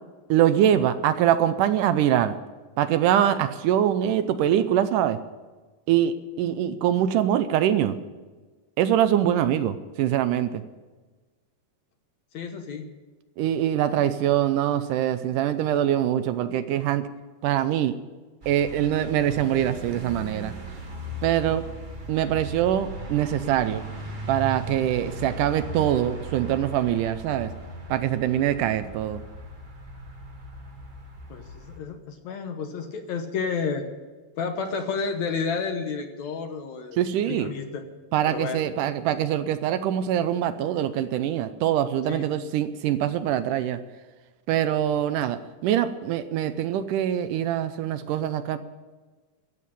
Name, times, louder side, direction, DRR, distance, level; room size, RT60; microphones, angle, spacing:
voice 1, 0.3-2.3 2.8-5.2 5.9-8.0 8.8-10.6 13.4-17.0 17.4-17.9 18.5-20.5 21.2-21.6 22.1-23.8 24.3-27.5 27.9-29.2 37.0-37.5 38.1-43.8 44.5-48.6, right 11 dB, 80° right, 11 dB, 2.1 m, -23 dB
voice 2, 12.3-12.9 31.3-33.9 34.4-37.0 37.2-37.8 38.2-38.6 42.1-42.3, left 5 dB, 65° left, 6 dB, 2.1 m, -31 dB
sound 1, 18.4-31.8, right 1 dB, 55° right, 0.5 m, -38 dB
14.0 x 7.6 x 10.0 m, 1.3 s
omnidirectional pair, 3.9 m